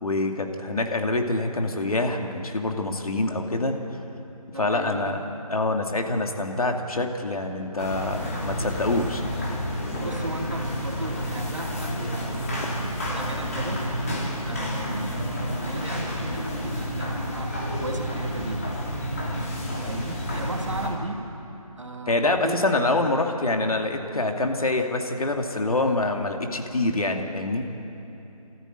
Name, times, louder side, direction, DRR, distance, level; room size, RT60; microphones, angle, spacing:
voice 1, 0.0-3.8 4.6-5.2 5.5-9.2 22.1-27.7, left 2 dB, 70° left, 4 dB, 2.4 m, -25 dB
voice 2, 4.5-5.2 9.9-13.9 14.4-18.8 19.8-21.3 21.8-23.5, right 2 dB, 55° right, 3 dB, 2.2 m, -36 dB
sound 1, 7.8-20.9, equal, 25° left, 2.6 m, -30 dB
26.0 x 14.0 x 9.1 m, 2.9 s
figure-of-eight pair, 180°, 19 cm